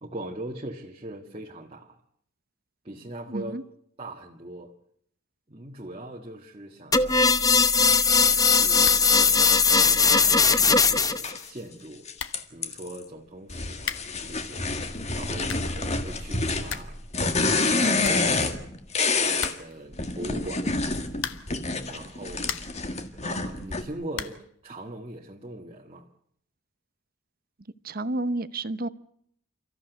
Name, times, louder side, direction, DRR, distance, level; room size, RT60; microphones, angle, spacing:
voice 1, 0.0-2.0 2.8-3.6 4.0-4.7 5.5-7.4 8.1-9.5 9.8-12.1 12.5-14.7 15.1-17.0 17.4-18.6 19.2-20.8 21.9-22.5 23.2-26.1, right 1 dB, 30° right, 1.7 m, -41 dB
voice 2, 3.3-3.6 27.8-28.9, right 2 dB, 45° right, 0.9 m, -30 dB
sound 1, 6.9-11.3, left 5 dB, 20° left, 0.9 m, -19 dB
sound 2, 8.8-9.2 9.5-9.6 10.2-10.3 10.5-10.8 11.8-11.9 12.1-12.5 13.8-14.2 15.2-15.8 16.2-16.3 16.5-17.0 17.3-17.4 17.7-17.8 18.0-18.8 19.4-19.9 21.1-21.6 22.1-22.9 24.1-24.5, left 8 dB, 65° left, 1.3 m, -37 dB
sound 3, 11.2-11.4 12.1-13.0 13.5-19.5 19.9-23.8, left 3 dB, 35° left, 1.8 m, -28 dB
29.5 x 14.0 x 8.1 m
head